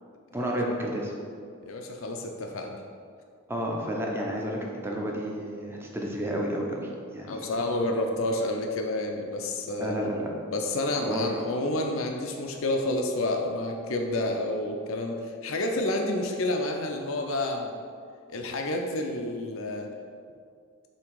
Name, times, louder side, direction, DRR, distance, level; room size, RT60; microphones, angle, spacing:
voice 1, 0.3-1.1 3.5-7.5 9.8-10.3 10.9-11.3, equal, 10° right, -1 dB, 0.7 m, -31 dB
voice 2, 1.6-2.8 7.2-10.0 10.5-17.7 18.3-19.9, left 1 dB, 70° left, 3 dB, 0.6 m, -29 dB
7.0 x 2.9 x 4.7 m, 2.2 s
head